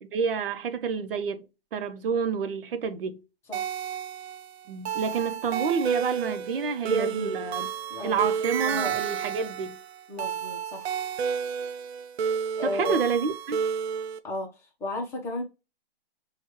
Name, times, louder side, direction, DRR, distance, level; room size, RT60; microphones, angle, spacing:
voice 1, 0.0-3.2 4.7-7.7 8.0-9.8 12.6-13.6, right 6 dB, 60° right, 0.9 m, -29 dB
sound 1, 3.5-14.2, right 7 dB, 80° right, 0.6 m, -31 dB
voice 2, 6.8-7.5 7.9-8.3 8.7-9.2 10.1-10.9 12.6-13.0 14.2-15.4, left 2 dB, 10° left, 0.7 m, -34 dB
6.0 x 2.4 x 2.9 m
hypercardioid pair, 155°, 31 cm